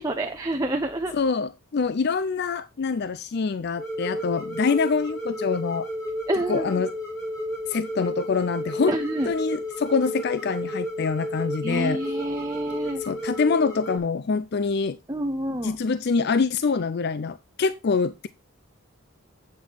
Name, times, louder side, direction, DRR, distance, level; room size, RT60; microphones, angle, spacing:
voice 1, 0.0-1.1 6.3-6.8 8.9-9.3 11.6-13.0 15.1-15.8, right 1 dB, 20° right, 3 dB, 0.8 m, -28 dB
voice 2, 1.1-5.9 6.5-6.9 7.7-8.9 9.2-12.0 13.0-15.0 15.6-18.3, left 5 dB, 50° left, 15 dB, 0.4 m, -25 dB
sound 1, 3.8-14.0, left 1 dB, 15° left, 2.7 m, -32 dB
8.5 x 7.4 x 4.1 m, 0.25 s
head